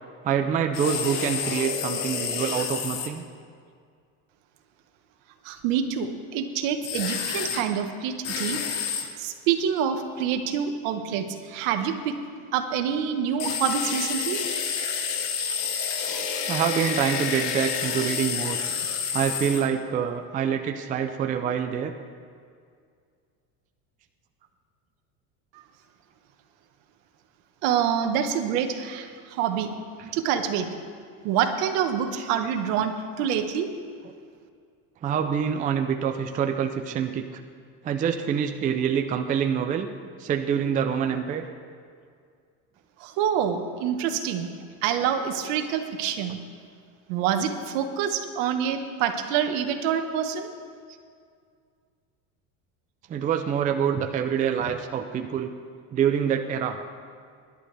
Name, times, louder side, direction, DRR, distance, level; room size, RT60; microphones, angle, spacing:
voice 1, 0.2-3.3 16.5-18.6 19.1-21.9 30.0-30.1 32.1-32.2 35.0-37.4 37.8-39.9 40.2-41.4 53.1-55.5 55.9-56.8, right 8 dB, 20° right, 5 dB, 0.5 m, -26 dB
sound 1, 0.7-3.1 6.8-7.6 8.2-9.1 13.4-19.7, left 7 dB, 60° left, 1.5 m, -29 dB
voice 2, 5.4-12.2 12.5-14.4 25.5-25.6 27.6-29.7 30.1-30.7 31.2-33.7 43.0-44.5 44.8-46.4 47.1-50.5, right 8 dB, 65° right, 6 dB, 1.5 m, -26 dB
25.5 x 11.5 x 3.4 m, 2.2 s
cardioid pair, 150°, 40 cm